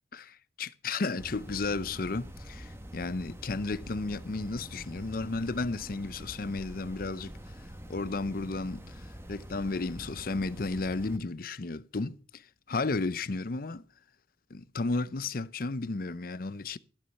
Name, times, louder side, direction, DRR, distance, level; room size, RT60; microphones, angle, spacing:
voice 1, 0.1-7.3 7.9-13.8 14.5-16.8, left 3 dB, 55° left, 0.6 m, -33 dB
sound 1, 1.2-11.2, equal, 15° right, 1.3 m, -45 dB
14.5 x 7.0 x 6.6 m
head